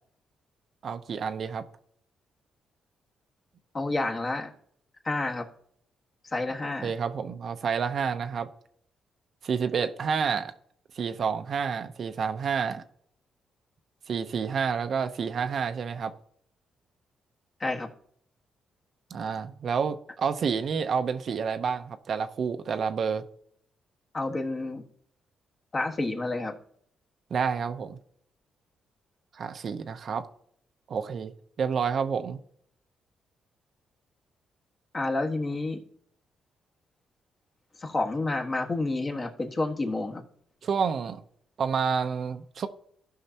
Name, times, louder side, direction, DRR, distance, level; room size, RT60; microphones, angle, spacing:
voice 1, 0.8-1.6 6.8-8.5 9.4-10.5 10.9-12.8 14.1-16.1 19.1-23.2 27.3-28.0 29.3-30.3 30.9-32.4 40.6-41.2 41.6-42.7, right 6 dB, 55° right, 8 dB, 0.7 m, -29 dB
voice 2, 3.7-4.5 5.0-5.5 6.2-6.9 17.6-17.9 24.1-24.8 25.7-26.5 34.9-35.8 37.8-40.2, left 2 dB, 35° left, 2 dB, 1.5 m, -29 dB
16.0 x 5.8 x 2.8 m, 0.66 s
cardioid pair, 90°, 0 cm